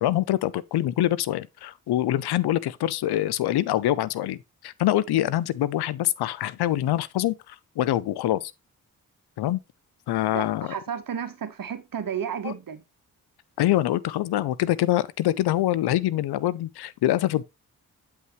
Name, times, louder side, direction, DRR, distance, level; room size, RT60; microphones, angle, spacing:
voice 1, 0.0-4.4 4.6-8.5 9.4-9.6 10.1-10.7 12.4-12.5 13.6-17.4, left 13 dB, 85° left, 0.5 m, -25 dB
voice 2, 10.3-12.8, right 8 dB, 60° right, 1.1 m, -32 dB
7.6 x 5.6 x 3.0 m
cardioid pair, 45°, 38 cm